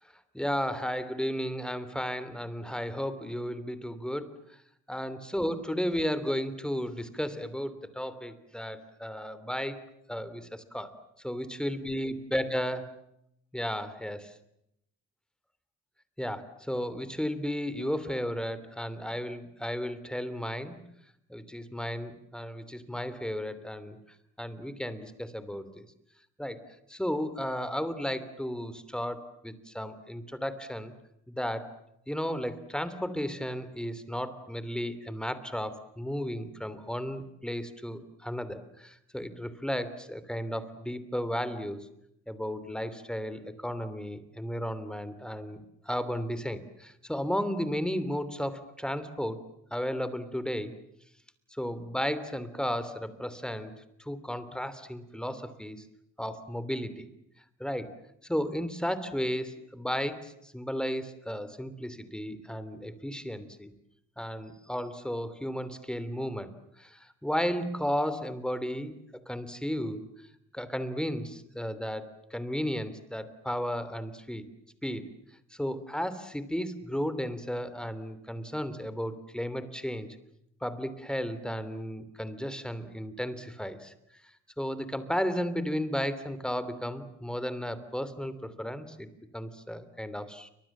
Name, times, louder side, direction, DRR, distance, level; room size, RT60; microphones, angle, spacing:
voice 1, 0.3-4.6 4.9-9.8 10.1-10.9 11.2-12.9 13.5-14.3 16.2-20.8 21.3-24.0 24.4-25.8 26.4-26.6 26.9-30.9 31.3-31.8 32.1-41.8 42.3-45.6 45.8-49.4 49.7-50.7 51.5-53.7 54.0-55.8 56.2-57.1 57.6-57.9 58.2-63.7 64.2-69.0 69.3-70.0 70.5-74.4 74.8-75.1 75.5-80.2 80.6-83.9 84.6-89.1 89.3-90.5, equal, 5° left, 13 dB, 3.1 m, -34 dB
29.5 x 25.5 x 7.4 m, 0.79 s
cardioid pair, 125°, 29 cm